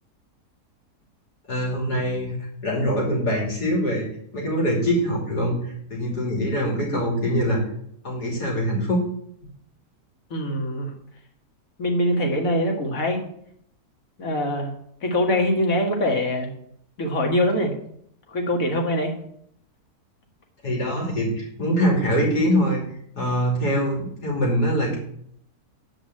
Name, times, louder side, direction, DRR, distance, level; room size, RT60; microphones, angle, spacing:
voice 1, 1.5-2.3 2.6-4.1 4.3-7.6 8.0-9.0 20.6-22.9 23.2-25.0, equal, 85° left, -2 dB, 3.4 m, -23 dB
voice 2, 10.3-10.9 11.8-13.2 14.2-14.7 15.0-16.5 17.0-17.7 18.3-19.1, left 1 dB, 55° left, 2 dB, 2.2 m, -23 dB
8.8 x 5.2 x 7.5 m, 0.67 s
omnidirectional pair, 1.7 m